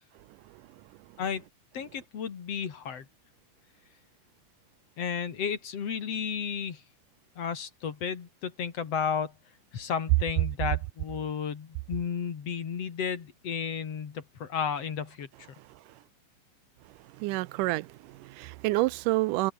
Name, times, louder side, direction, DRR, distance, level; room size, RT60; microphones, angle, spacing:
voice 1, 1.7-3.1 5.0-6.8 7.4-9.3 9.7-15.3, left 7 dB, 50° left, 3.1 m, -33 dB
voice 2, 17.2-19.5, right 20 dB, 85° right, 2.1 m, -28 dB
omnidirectional pair, 3.7 m